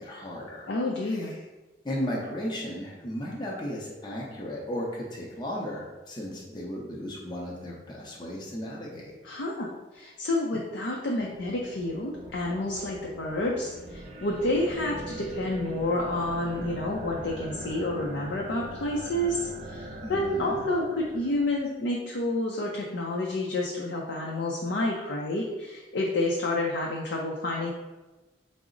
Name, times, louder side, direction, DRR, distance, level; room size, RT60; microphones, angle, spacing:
voice 1, 0.0-0.7 1.0-1.4 1.8-9.1 20.0-20.6, equal, 25° left, -4 dB, 0.5 m, -35 dB
voice 2, 0.7-1.4 9.2-9.7 9.9-27.7, left 1 dB, 75° left, -1 dB, 0.5 m, -29 dB
sound 1, 11.2-21.7, right 1 dB, 40° right, 0.7 m, -41 dB
4.7 x 2.0 x 3.7 m, 1.2 s
head